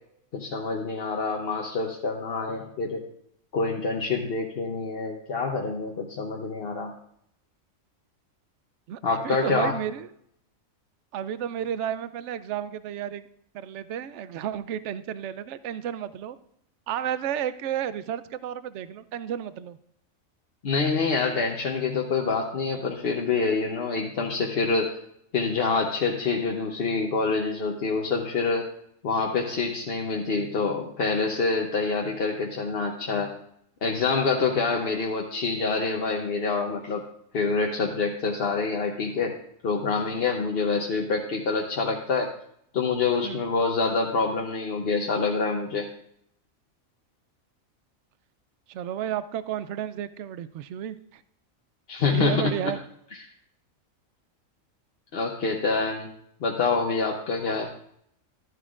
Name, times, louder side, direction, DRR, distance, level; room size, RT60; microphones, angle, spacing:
voice 1, 0.3-3.0 3.5-6.9 9.0-9.7 20.6-24.9 25.3-28.7 29.0-33.3 33.8-37.0 37.3-39.4 39.6-42.3 42.7-45.9 51.9-52.5 55.1-56.1 56.4-57.7, left 4 dB, 50° left, 0 dB, 1.0 m, -26 dB
voice 2, 8.9-10.1 11.1-13.3 13.5-16.4 16.9-19.8 43.2-43.4 48.7-51.2 52.1-52.8, right 10 dB, 65° right, 14 dB, 0.8 m, -32 dB
12.5 x 11.0 x 2.4 m, 0.72 s
omnidirectional pair, 1.4 m